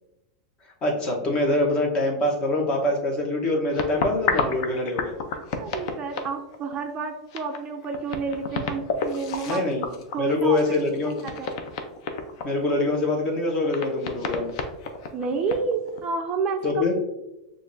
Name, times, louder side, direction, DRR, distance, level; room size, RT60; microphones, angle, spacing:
voice 1, 0.8-5.1 9.5-9.9 10.2-11.2 12.4-14.6 16.6-16.9, left 2 dB, 30° left, 0 dB, 1.0 m, -24 dB
sound 1, 3.7-6.7 7.0-7.1 7.3-12.4 13.0-13.1 13.6-16.0, left 5 dB, 60° left, 0.6 m, -30 dB
voice 2, 5.3-9.6 10.1-11.5 15.1-16.9, right 4 dB, 25° right, 4 dB, 0.4 m, -30 dB
6.6 x 2.5 x 2.6 m, 0.93 s
supercardioid pair, 145°, 3 cm